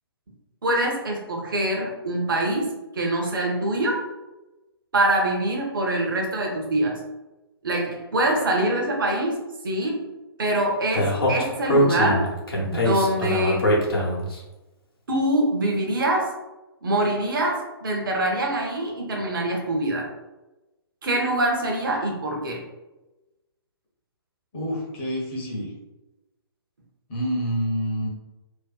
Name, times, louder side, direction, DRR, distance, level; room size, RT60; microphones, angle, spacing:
voice 1, 0.6-4.1 4.9-7.0 7.6-10.0 10.4-12.3 12.6-13.8 15.1-16.4 16.8-20.1 21.0-22.6, right 1 dB, 55° right, 0 dB, 0.7 m, -24 dB
Speech, 10.9-14.3, equal, 65° left, 0.7 m, -22 dB
voice 2, 24.5-25.7 27.1-28.1, equal, 25° left, -5 dB, 0.6 m, -27 dB
2.6 x 2.1 x 2.2 m, 1.0 s
figure-of-eight pair, 130°, 13 cm